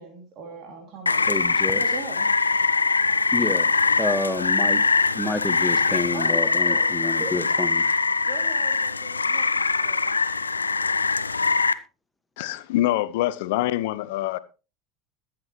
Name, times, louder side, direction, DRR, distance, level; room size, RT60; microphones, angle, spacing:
voice 1, 0.0-1.2 1.7-2.3 6.1-9.5 9.8-10.1, right 4 dB, 45° right, 2.8 m, -40 dB
Rain, 1.1-11.7, left 4 dB, 85° left, 0.6 m, -22 dB
voice 2, 1.3-1.8 3.3-3.7 4.0-4.8 5.1-7.8, left 2 dB, 10° left, 1.6 m, -28 dB
voice 3, 12.4-14.4, left 15 dB, 60° left, 0.9 m, -25 dB
21.0 x 7.8 x 3.1 m
figure-of-eight pair, 75°, 0 cm